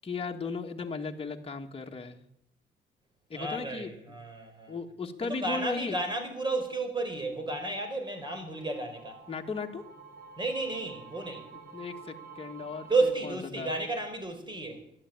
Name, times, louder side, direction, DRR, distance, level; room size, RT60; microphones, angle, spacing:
voice 1, 0.0-2.2 3.3-4.2 4.7-6.0 9.3-9.8 11.7-13.7, left 4 dB, 30° left, 2 dB, 1.8 m, -36 dB
voice 2, 3.3-4.8 5.2-9.2 10.4-11.5 12.9-14.8, right 2 dB, 25° right, 6 dB, 4.8 m, -32 dB
sound 1, 7.3-13.1, right 5 dB, 60° right, 3.9 m, -50 dB
12.0 x 12.0 x 8.9 m, 0.73 s
cardioid pair, 90°, 20 cm